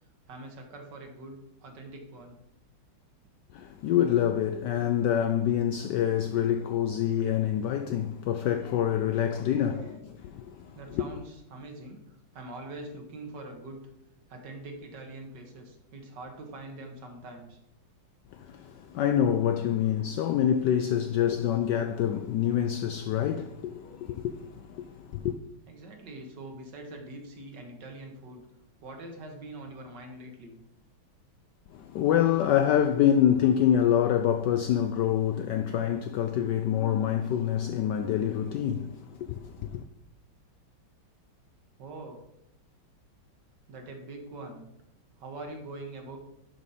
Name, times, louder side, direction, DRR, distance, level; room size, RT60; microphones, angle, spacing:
voice 1, 0.3-2.4 9.2-10.0 10.7-12.0 12.3-13.8 14.3-17.6 25.7-28.5 28.8-30.6 41.8-42.2 43.7-44.7 45.2-46.2, right 2 dB, 55° right, 1.8 m, -43 dB
voice 2, 3.5-9.9 10.3-11.0 18.3-25.4 31.7-39.8, left 10 dB, 80° left, 1.0 m, -26 dB
11.5 x 5.3 x 4.2 m
omnidirectional pair, 2.3 m